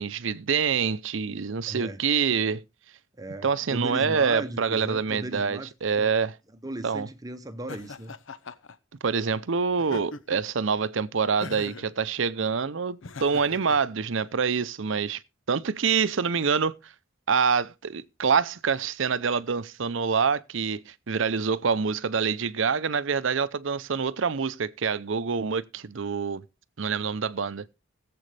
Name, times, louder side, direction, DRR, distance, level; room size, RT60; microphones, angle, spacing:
voice 1, 0.0-2.6 3.4-6.4 6.8-7.1 9.0-15.2 15.5-16.7 17.3-26.4 26.8-27.7, right 5 dB, 65° right, 0.6 m, -26 dB
voice 2, 1.7-2.1 3.2-5.7 6.0-6.1 6.6-8.1, right 1 dB, 20° right, 0.8 m, -37 dB
Laughter, 7.7-8.8 9.8-10.5 11.4-11.9 13.0-13.8, left 3 dB, 70° left, 0.8 m, -39 dB
19.5 x 7.6 x 3.3 m
head